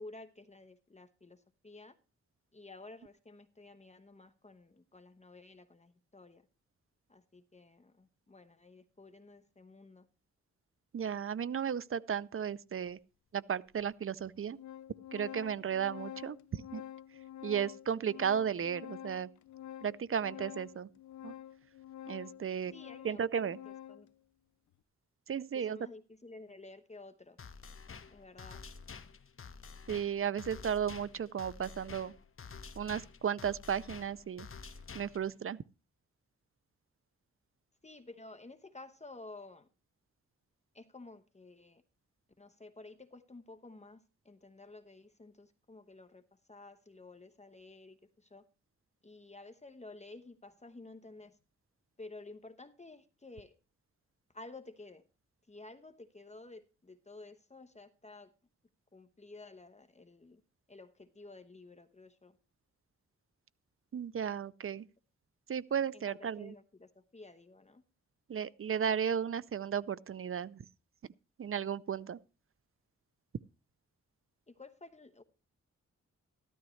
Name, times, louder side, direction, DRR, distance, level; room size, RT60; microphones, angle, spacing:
voice 1, 0.0-2.0 2.5-6.4 7.1-10.1 22.7-24.1 25.5-27.4 28.1-28.6 37.8-39.7 40.7-41.8 42.4-46.2 46.5-48.5 49.0-51.4 52.0-53.5 54.3-55.0 55.5-58.3 58.9-60.4 60.7-62.3 65.9-67.8 74.5-75.2, left 2 dB, 25° left, 1.0 m, -52 dB
voice 2, 10.9-13.0 13.3-14.6 15.1-16.8 17.4-19.3 19.8-20.9 21.2-21.3 22.1-22.7 23.0-23.6 25.3-25.8 29.9-32.1 32.8-34.5 34.9-35.6 63.9-64.9 65.5-66.5 68.3-70.6 71.4-72.2, right 8 dB, 50° right, 0.5 m, -34 dB
Organ, 12.9-13.0 13.8-13.9 14.2-24.1, left 11 dB, 80° left, 0.6 m, -48 dB
sound 1, 27.4-35.4, left 5 dB, 45° left, 1.0 m, -49 dB
14.0 x 12.5 x 3.2 m
wide cardioid pair, 95°, 29 cm